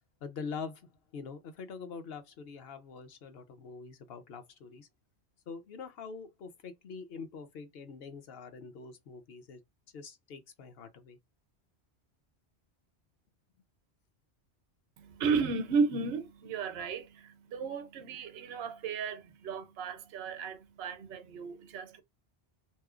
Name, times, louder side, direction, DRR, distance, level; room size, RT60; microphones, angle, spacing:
voice 1, 0.2-4.9 5.5-9.6 9.9-11.2, left 5 dB, 65° left, 0.9 m, -44 dB
voice 2, 15.0-22.0, right 5 dB, 70° right, 0.8 m, -34 dB
3.1 x 3.0 x 2.4 m
omnidirectional pair, 1.1 m